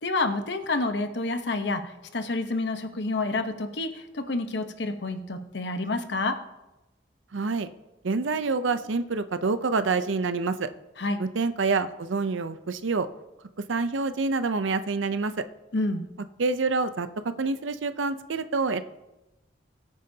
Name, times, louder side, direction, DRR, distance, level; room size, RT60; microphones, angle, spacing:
voice 1, 0.0-6.4 11.0-11.2 15.7-16.0, left 2 dB, 65° left, 7 dB, 1.0 m, -29 dB
voice 2, 7.3-7.7 8.0-10.7 11.2-13.1 13.7-15.3 16.4-17.1 17.4-18.8, right 4 dB, 85° right, 11 dB, 0.6 m, -27 dB
22.0 x 9.2 x 2.8 m, 0.99 s
head